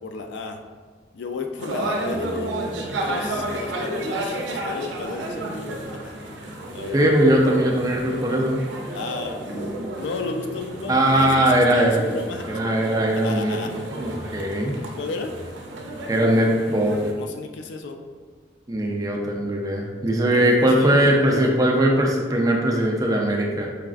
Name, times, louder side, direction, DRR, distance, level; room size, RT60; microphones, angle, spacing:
voice 1, 0.0-0.6 1.1-2.5 3.0-6.1 6.7-7.0 8.9-9.4 10.0-12.9 13.2-13.7 15.0-15.3 17.1-18.0 20.3-21.5, left 3 dB, 80° left, 4 dB, 0.3 m, -33 dB
sound 1, 1.6-17.1, right 1 dB, 90° right, 0.5 m, -32 dB
voice 2, 6.9-8.6 10.9-12.0 12.5-13.6 13.8-14.8 16.1-17.0 18.7-23.7, right 1 dB, 20° right, 0 dB, 0.3 m, -20 dB
4.7 x 2.3 x 2.4 m, 1.5 s
head